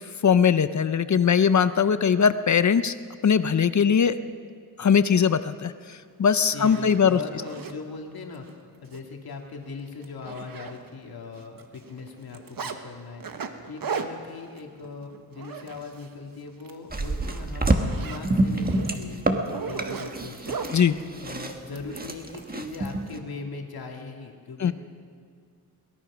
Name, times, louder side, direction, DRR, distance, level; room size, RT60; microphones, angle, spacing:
voice 1, 0.2-2.9 3.2-4.2 4.8-7.2 20.7-21.0 24.6-24.7, left 7 dB, 50° left, 12 dB, 0.6 m, -20 dB
Zipper (clothing), 5.9-6.0 6.4-7.8 8.3-8.5 8.8-9.0 9.3-9.4 9.8-11.1 11.4-12.8 13.2-16.1 16.5-16.8 17.1-20.8 21.7-22.4, right 6 dB, 65° right, 1.4 m, -37 dB
voice 2, 6.5-20.8 21.2-24.7, left 4 dB, 80° left, 2 dB, 2.1 m, -40 dB
sound 1, 16.9-23.2, right 2 dB, 25° right, 1.4 m, -27 dB
23.0 x 19.0 x 6.1 m, 2.1 s
wide cardioid pair, 145°, 36 cm